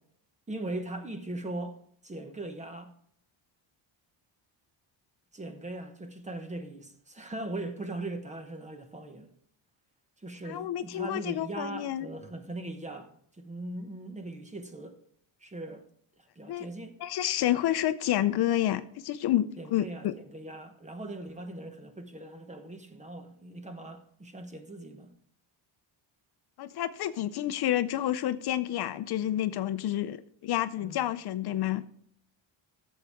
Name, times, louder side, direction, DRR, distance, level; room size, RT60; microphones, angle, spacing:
voice 1, 0.5-1.8 2.0-2.9 5.3-9.3 10.2-15.0 15.4-15.8 16.2-16.9 19.6-25.1 30.8-31.0, right 2 dB, 15° right, 1.0 m, -40 dB
voice 2, 10.5-12.1 16.5-16.7 17.0-20.1 26.6-31.8, left 12 dB, 60° left, 0.6 m, -29 dB
12.5 x 7.4 x 3.5 m
cardioid pair, 160°, 45 cm